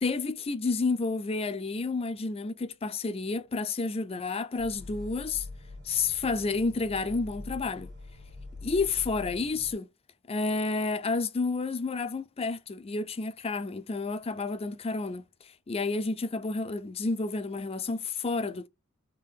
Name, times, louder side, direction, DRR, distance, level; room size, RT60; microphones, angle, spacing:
voice 1, 0.0-5.5 5.8-7.9 8.6-9.9 10.3-18.7, left 3 dB, 30° left, 0.4 m, -30 dB
sound 1, 4.6-9.7, left 2 dB, 60° right, 1.7 m, -44 dB
3.7 x 2.5 x 3.4 m
head